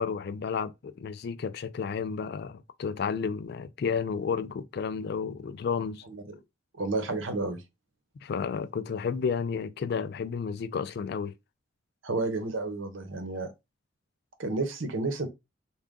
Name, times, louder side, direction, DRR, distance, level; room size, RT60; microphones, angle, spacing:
voice 1, 0.0-6.0 8.2-11.3, left 6 dB, 55° left, 0.3 m, -32 dB
voice 2, 6.1-6.4 6.8-7.6 12.0-13.5 14.4-15.3, right 3 dB, 80° right, 0.9 m, -31 dB
3.6 x 2.3 x 3.6 m
head